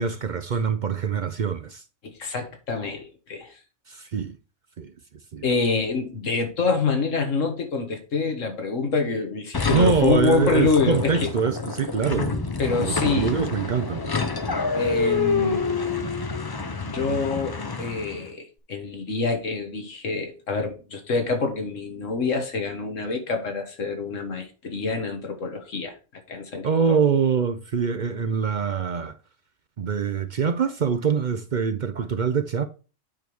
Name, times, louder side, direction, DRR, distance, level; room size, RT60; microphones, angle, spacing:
voice 1, 0.0-1.8 3.9-4.4 4.8-4.9 5.3-5.4 9.7-14.1 26.6-29.1 29.8-32.7, right 6 dB, 50° right, 0.6 m, -24 dB
voice 2, 2.0-3.6 5.4-11.3 12.6-13.4 14.8-15.7 16.9-26.0 26.3-27.0, left 4 dB, 90° left, 1.9 m, -26 dB
sound 1, 9.5-18.3, left 4 dB, 30° left, 0.4 m, -28 dB
8.7 x 3.5 x 6.2 m
omnidirectional pair, 1.3 m